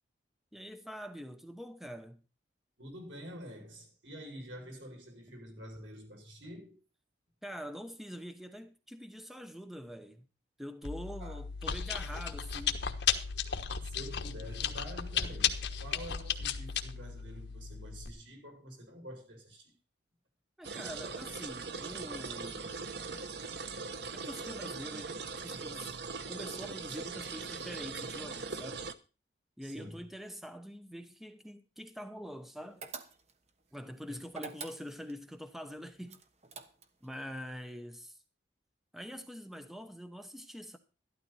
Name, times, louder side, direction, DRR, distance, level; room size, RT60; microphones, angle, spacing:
voice 1, 0.5-2.2 7.4-10.2 10.6-12.8 20.6-22.8 24.1-25.9 26.3-28.9 29.6-32.9 33.7-36.2 37.0-38.2 38.9-40.8, equal, ahead, 0.9 m, -45 dB
voice 2, 2.8-6.8 11.2-11.4 13.8-19.7 29.6-30.1 34.1-34.2, equal, 85° right, 6.7 m, -47 dB
Chewing mastication, 10.8-18.1, left 7 dB, 65° left, 1.2 m, -35 dB
sound 1, 20.6-28.9, right 4 dB, 65° right, 1.0 m, -40 dB
sound 2, 32.8-33.5 34.3-35.2 36.1-37.1, right 5 dB, 35° right, 1.2 m, -45 dB
12.5 x 12.5 x 4.2 m
head